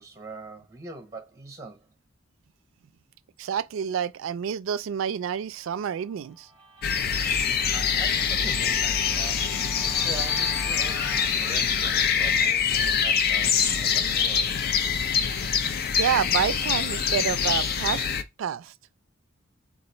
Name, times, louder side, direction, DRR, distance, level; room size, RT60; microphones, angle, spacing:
voice 1, 0.0-1.9 7.7-14.6, right 3 dB, 15° right, 0.8 m, -43 dB
voice 2, 3.4-6.5 16.0-18.1 18.4-18.7, right 8 dB, 80° right, 0.3 m, -28 dB
Guitar, 5.8-11.3, left 2 dB, 5° left, 1.5 m, -47 dB
sound 1, 6.8-18.2, left 7 dB, 50° left, 0.5 m, -24 dB
3.9 x 2.4 x 4.3 m
head